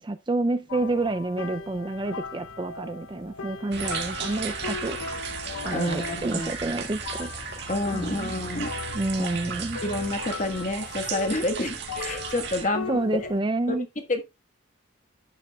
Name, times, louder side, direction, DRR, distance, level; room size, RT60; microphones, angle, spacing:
voice 1, 0.0-5.0 5.6-7.3 7.6-8.3 8.9-9.8 12.6-13.9, right 2 dB, 20° right, 0.4 m, -29 dB
sound 1, 0.7-13.4, left 5 dB, 80° left, 0.7 m, -39 dB
sound 2, 3.7-12.6, right 5 dB, 50° right, 1.9 m, -35 dB
voice 2, 5.7-6.5 7.7-8.7 9.2-13.0 13.7-13.8 14.1-14.2, left 2 dB, 35° left, 1.4 m, -29 dB
11.0 x 8.9 x 2.3 m
head